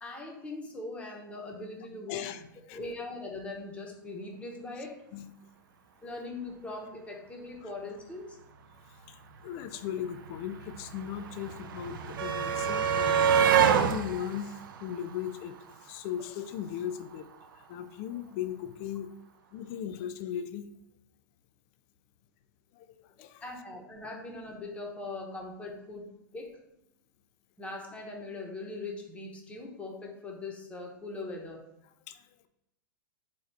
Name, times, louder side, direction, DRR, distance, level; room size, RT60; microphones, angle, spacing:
voice 1, 0.0-2.3 2.7-5.0 6.0-8.4 23.2-26.6 27.6-31.7, left 2 dB, 10° left, 0 dB, 0.8 m, -41 dB
voice 2, 2.1-2.4 2.7-2.8 5.1-5.3 7.6-7.7 9.1-13.1 13.6-15.6 15.8-17.3 17.6-19.1 19.5-20.7 22.7-23.4 32.1-32.5, left 10 dB, 45° left, 10 dB, 0.4 m, -38 dB
sound 1, 9.4-9.5 9.6-15.8 17.0-17.1 17.4-17.5, right 7 dB, 75° right, 0.4 m, -28 dB
4.3 x 2.3 x 4.5 m, 0.84 s
hypercardioid pair, 125°, 11 cm